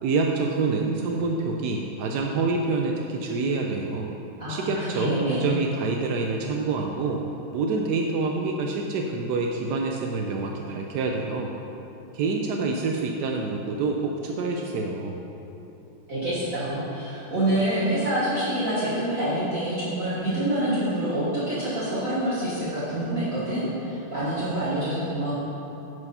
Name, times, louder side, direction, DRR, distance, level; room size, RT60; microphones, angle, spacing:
voice 1, 0.0-4.1 4.5-7.2 7.5-11.5 12.1-15.2, right 3 dB, 80° right, 1 dB, 0.9 m, -27 dB
voice 2, 4.4-5.5 16.1-25.3, right 1 dB, 45° right, -11 dB, 1.8 m, -26 dB
9.6 x 4.8 x 5.5 m, 2.9 s
omnidirectional pair, 2.3 m